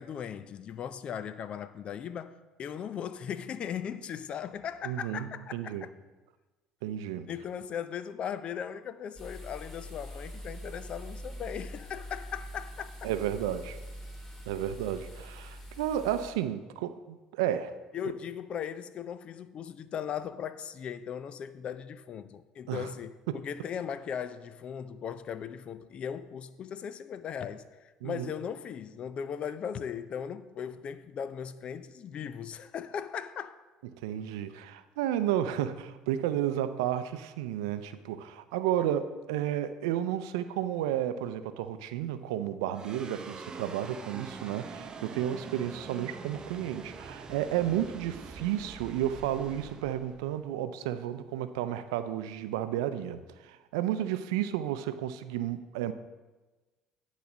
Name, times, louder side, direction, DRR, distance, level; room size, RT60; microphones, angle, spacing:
voice 1, 0.0-5.9 7.3-13.1 17.9-33.6, left 8 dB, 50° left, 0.5 m, -38 dB
voice 2, 4.8-5.9 6.8-7.3 13.0-13.8 14.5-17.7 22.7-22.9 23.3-23.4 28.0-28.3 33.9-55.9, right 11 dB, 90° right, 0.5 m, -32 dB
sound 1, 9.2-16.3, equal, 15° left, 2.4 m, -44 dB
sound 2, 42.7-51.3, right 4 dB, 30° right, 0.8 m, -45 dB
10.5 x 4.1 x 6.0 m
supercardioid pair, 85°, 2 cm